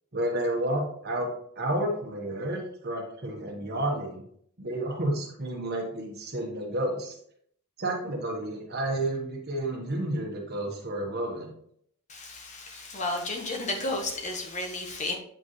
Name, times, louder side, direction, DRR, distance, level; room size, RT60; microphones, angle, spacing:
voice 1, 0.1-4.2 4.6-7.1 7.8-11.5, right 1 dB, 50° right, 1 dB, 1.3 m, -31 dB
voice 2, 12.1-15.1, left 2 dB, 35° left, 2 dB, 1.3 m, -32 dB
7.6 x 5.2 x 3.1 m, 0.66 s
head